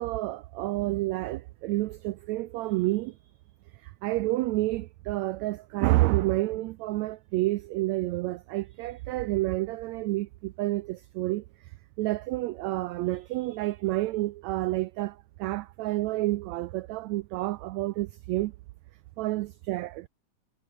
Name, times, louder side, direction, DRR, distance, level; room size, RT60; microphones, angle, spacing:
voice 1, 0.0-3.2 3.8-11.4 12.0-18.5 19.2-20.1, right 18 dB, 85° right, 1.5 m, -29 dB
omnidirectional pair, 3.8 m